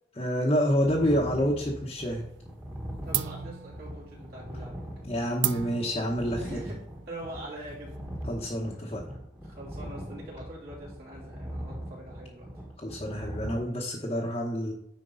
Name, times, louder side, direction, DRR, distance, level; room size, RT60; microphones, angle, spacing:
voice 1, 0.2-2.2 5.0-6.6 8.3-9.0 12.8-14.7, equal, 30° left, -3 dB, 1.0 m, -28 dB
sound 1, 0.8-13.6, equal, 15° right, 1.6 m, -41 dB
sound 2, 1.2-2.1 2.4-2.8 3.1-8.3, right 12 dB, 70° right, 0.4 m, -36 dB
voice 2, 3.0-4.8 6.4-6.8 7.1-7.9 8.7-8.9 9.4-12.5, right 1 dB, 50° right, -5 dB, 3.1 m, -43 dB
9.7 x 4.5 x 3.8 m, 0.71 s
head